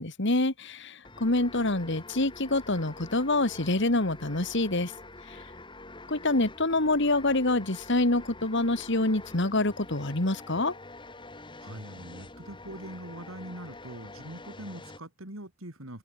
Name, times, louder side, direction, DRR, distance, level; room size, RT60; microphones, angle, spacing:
voice 1, 0.0-4.9 5.3-5.4 6.1-10.7, left 2 dB, 60° left, 2.4 m, -26 dB
sound 1, 1.0-15.0, left 2 dB, 25° left, 3.4 m, -46 dB
voice 2, 11.6-16.0, right 1 dB, 80° right, 5.8 m, -42 dB
open air
head